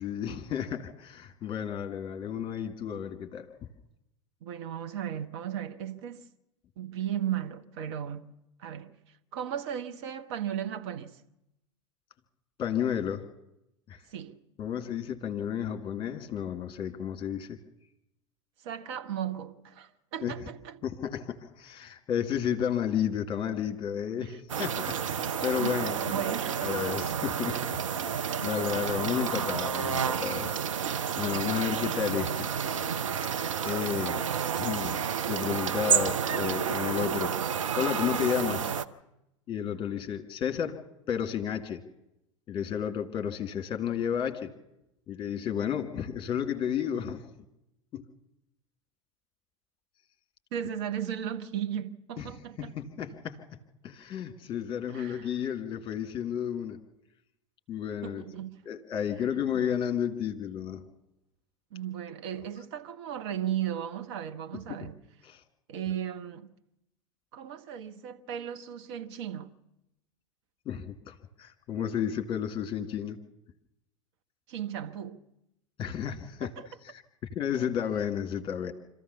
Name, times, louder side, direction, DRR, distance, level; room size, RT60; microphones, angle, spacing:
voice 1, 0.0-3.5 12.6-13.2 13.9-14.0 14.6-17.6 20.2-20.3 20.8-26.3 26.6-30.6 31.2-32.5 33.6-34.2 34.5-35.0 35.3-37.3 37.8-38.7 39.5-40.8 41.1-41.8 42.5-44.5 45.1-47.3 47.9-48.1 52.2-52.3 52.6-53.5 53.8-56.8 57.7-58.2 58.7-60.9 65.3-65.4 70.7-73.2 75.8-77.0 77.3-78.7, left 8 dB, 30° left, 2.1 m, -32 dB
voice 2, 4.4-6.3 6.8-8.3 8.6-11.2 14.1-14.4 18.6-20.8 24.2-24.4 25.6-27.0 28.2-28.5 50.5-52.7 54.9-55.3 58.0-58.7 59.3-59.5 61.7-65.0 65.7-66.5 67.3-69.5 74.5-75.2 76.4-76.7, right 10 dB, 55° right, 1.1 m, -36 dB
sound 1, 24.5-38.8, right 7 dB, 70° right, 0.8 m, -30 dB
25.5 x 14.5 x 7.0 m
figure-of-eight pair, 85°, 17 cm